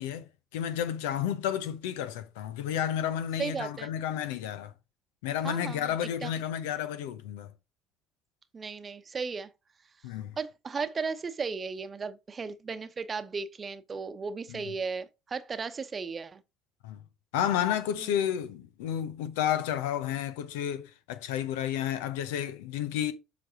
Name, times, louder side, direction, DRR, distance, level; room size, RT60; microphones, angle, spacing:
voice 1, 0.0-4.7 5.2-7.5 10.0-10.3 14.5-14.6 16.8-17.0 17.3-23.1, left 10 dB, 75° left, 0.8 m, -31 dB
voice 2, 3.4-3.9 5.4-5.9 6.2-6.3 8.5-9.5 10.4-16.4 18.0-18.2, right 5 dB, 30° right, 0.9 m, -35 dB
7.8 x 5.1 x 3.7 m
hypercardioid pair, 65°, 0 cm